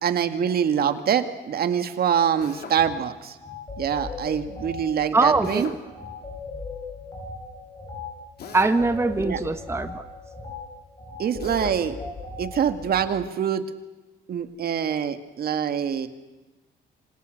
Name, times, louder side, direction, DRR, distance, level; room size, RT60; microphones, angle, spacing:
voice 1, 0.0-3.4 3.8-5.7 9.2-9.4 11.2-12.0 12.4-13.6 14.3-16.1, right 8 dB, 55° right, 9 dB, 2.0 m, -25 dB
Drill, 2.4-2.8 5.4-5.8 8.4-8.8 11.4-11.8, left 6 dB, 60° left, 3.9 m, -39 dB
sound 1, 2.8-3.0 3.4-13.1, left 4 dB, 20° left, 7.0 m, -38 dB
voice 2, 5.1-5.7 8.5-10.0, right 3 dB, 15° right, 9 dB, 1.3 m, -22 dB
27.0 x 26.5 x 6.6 m, 1.1 s
cardioid pair, 110°, 19 cm